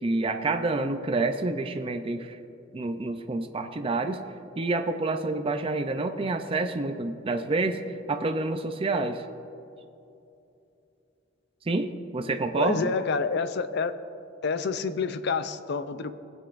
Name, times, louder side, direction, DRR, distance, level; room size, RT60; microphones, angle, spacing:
voice 1, 0.0-2.4 2.7-4.2 4.6-9.2 11.7-12.9, right 3 dB, 30° right, 6 dB, 0.4 m, -28 dB
voice 2, 12.6-13.9 14.4-16.1, left 5 dB, 60° left, 11 dB, 0.5 m, -28 dB
22.5 x 8.0 x 2.5 m, 2.8 s
head